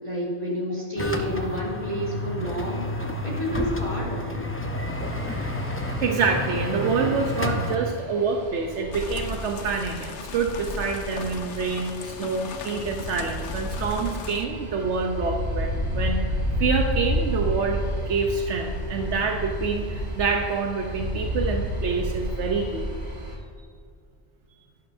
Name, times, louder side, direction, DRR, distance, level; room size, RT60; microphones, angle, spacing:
voice 1, 0.0-2.9 3.2-4.5, equal, 35° right, -6 dB, 3.0 m, -29 dB
sound 1, 1.0-7.8, left 1 dB, 15° left, 0.5 m, -30 dB
sound 2, 4.9-23.4, equal, 65° right, 1.9 m, -32 dB
voice 2, 5.3-5.6 6.0-16.2 16.6-22.9, right 4 dB, 85° right, 2 dB, 1.1 m, -27 dB
sound 3, 8.9-14.5, left 6 dB, 90° left, 1.0 m, -38 dB
11.5 x 11.0 x 2.7 m, 2.2 s
omnidirectional pair, 1.2 m